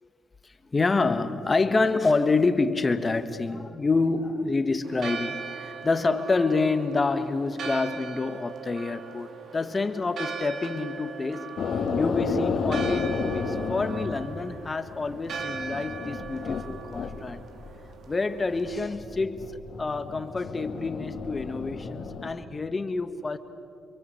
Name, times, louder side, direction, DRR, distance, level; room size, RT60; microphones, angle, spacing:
voice 1, 0.7-11.5 12.0-17.4 18.1-23.4, left 3 dB, 25° left, 1.5 m, -27 dB
Church bell, 4.8-18.9, right 6 dB, 65° right, 2.1 m, -40 dB
sound 1, 11.6-17.2 17.5-18.1 18.4-22.3, left 5 dB, 60° left, 2.6 m, -32 dB
28.0 x 24.0 x 8.3 m
cardioid pair, 90°, 0 cm